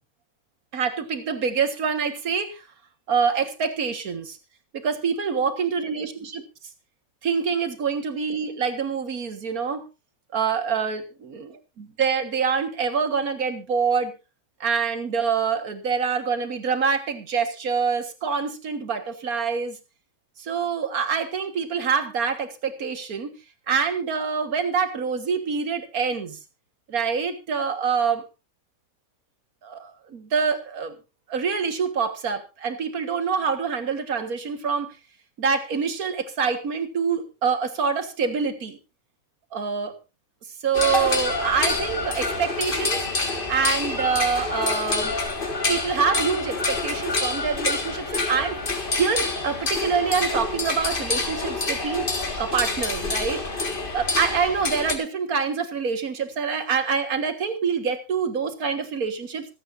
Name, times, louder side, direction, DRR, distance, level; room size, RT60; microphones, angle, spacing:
voice 1, 0.7-2.6 3.1-4.4 4.7-6.4 7.2-9.8 10.3-14.1 14.6-19.8 20.4-23.3 23.7-26.4 26.9-28.2 29.6-31.0 31.3-34.9 35.4-38.8 39.5-39.9 40.6-43.0 43.5-45.1 45.7-52.1 52.4-53.4 53.9-59.5, right 6 dB, 85° right, 8 dB, 2.1 m, -26 dB
sound 1, 40.7-55.0, left 3 dB, 40° left, 1.9 m, -27 dB
26.5 x 8.9 x 2.6 m, 0.28 s
omnidirectional pair, 1.5 m